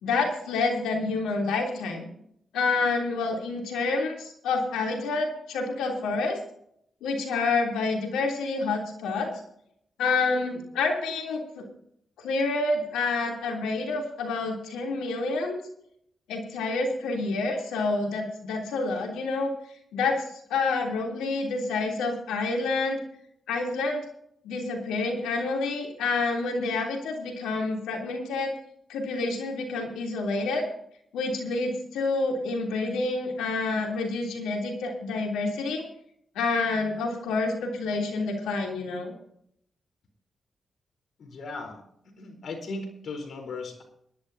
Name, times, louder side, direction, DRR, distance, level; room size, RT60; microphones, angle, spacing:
voice 1, 0.0-2.1 2.5-6.4 7.0-9.3 10.0-11.6 12.2-15.6 16.3-19.5 19.9-20.2 20.5-23.0 23.5-24.0 24.4-28.5 28.9-30.6 31.1-35.8 36.3-39.1, left 3 dB, 90° left, 1 dB, 3.4 m, -28 dB
voice 2, 41.2-41.8 42.2-43.8, left 3 dB, 70° left, 5 dB, 4.1 m, -37 dB
22.0 x 11.5 x 2.8 m, 0.70 s
supercardioid pair, 55°, 0 cm